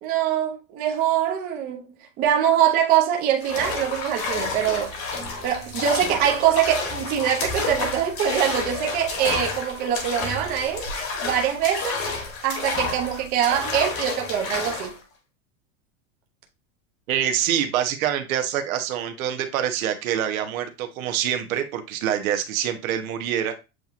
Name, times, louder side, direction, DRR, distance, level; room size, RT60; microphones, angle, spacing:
voice 1, 0.0-4.9 5.4-10.9 11.2-12.0 12.4-15.0, right 10 dB, 20° right, 0.5 m, -23 dB
sound 1, 3.4-15.0, left 3 dB, 30° left, 1.1 m, -30 dB
voice 2, 17.1-23.5, right 10 dB, 80° right, 1.0 m, -25 dB
7.6 x 2.7 x 2.5 m
supercardioid pair, 165°, 41 cm